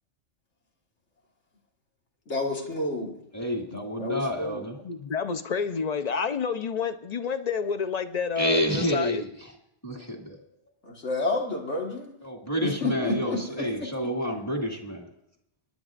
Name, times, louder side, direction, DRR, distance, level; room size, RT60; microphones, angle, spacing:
voice 1, 2.3-3.2 3.7-4.6 10.8-12.2 12.6-13.9, left 2 dB, 80° left, 1 dB, 2.0 m, -30 dB
voice 2, 3.3-4.8 8.4-9.5 9.8-10.4 12.2-15.1, equal, 15° left, -1 dB, 2.1 m, -29 dB
voice 3, 4.8-9.2, left 6 dB, 45° left, 10 dB, 0.6 m, -29 dB
25.5 x 11.0 x 2.5 m, 0.79 s
omnidirectional pair, 1.2 m